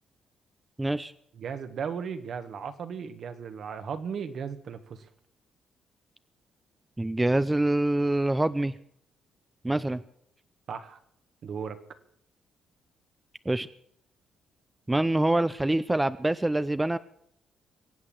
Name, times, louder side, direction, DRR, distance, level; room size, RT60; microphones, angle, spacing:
voice 1, 0.8-1.1 7.0-8.7 9.6-10.0 13.5-13.7 14.9-17.0, right 1 dB, 10° right, 13 dB, 0.6 m, -25 dB
voice 2, 1.4-5.0 10.7-11.0 11.4-11.8, right 6 dB, 60° right, 8 dB, 1.7 m, -36 dB
23.0 x 8.4 x 7.5 m, 0.70 s
cardioid pair, 90°, 0 cm